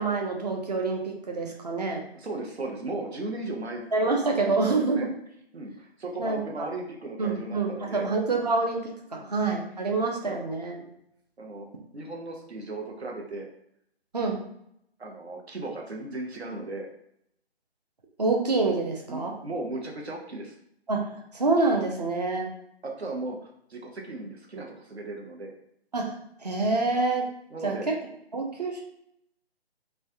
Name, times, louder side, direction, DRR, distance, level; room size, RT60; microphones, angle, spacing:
voice 1, 0.0-2.0 3.9-5.1 6.2-6.7 7.2-10.8 14.1-14.4 18.2-19.3 20.9-22.5 25.9-26.1 26.4-27.3 27.6-28.0 28.3-28.8, right 3 dB, 40° right, 1 dB, 0.5 m, -27 dB
voice 2, 2.1-3.9 4.8-5.1 5.5-8.1 9.2-9.3 10.2-10.4 11.4-11.7 11.9-13.5 15.0-16.9 19.1-20.5 22.8-25.5 27.5-27.8, right 2 dB, 80° right, 0 dB, 0.8 m, -36 dB
3.1 x 2.3 x 2.7 m, 0.73 s
figure-of-eight pair, 150°, 32 cm